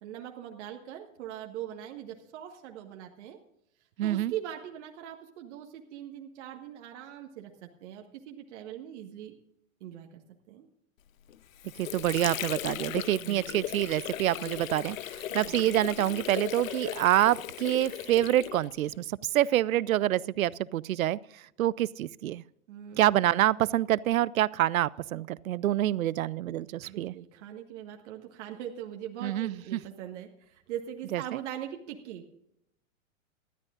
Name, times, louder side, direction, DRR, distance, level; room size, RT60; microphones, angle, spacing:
voice 1, 0.0-3.4 4.0-9.3 9.8-10.1 10.5-10.7 13.2-13.6 15.4-15.7 22.7-23.2 26.9-32.3, right 10 dB, 55° right, 3 dB, 1.6 m, -41 dB
voice 2, 4.0-4.3 11.8-22.4 23.0-27.1 29.2-29.8 31.1-31.4, right 13 dB, 80° right, 22 dB, 0.6 m, -27 dB
Water / Sink (filling or washing), 11.3-19.0, left 12 dB, 70° left, 0.8 m, -37 dB
19.0 x 13.0 x 2.5 m, 0.80 s
hypercardioid pair, 115°, 41 cm